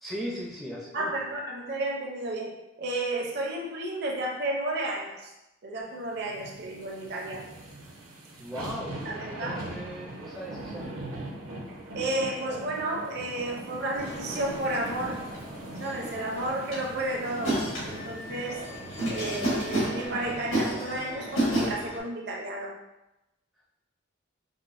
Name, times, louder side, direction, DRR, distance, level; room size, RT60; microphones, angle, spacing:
voice 1, 0.0-1.1 8.4-11.0, equal, ahead, -5 dB, 0.4 m, -38 dB
voice 2, 0.9-5.3 5.6-7.5 9.0-9.6 11.9-15.2 15.7-18.6 19.1-22.8, right 1 dB, 50° right, 0 dB, 0.5 m, -32 dB
sound 1, 6.2-20.7 21.1-21.2, right 1 dB, 85° right, 0.8 m, -41 dB
sound 2, 14.0-22.0, right 1 dB, 75° left, 1.5 m, -32 dB
4.9 x 2.0 x 2.5 m, 0.94 s
head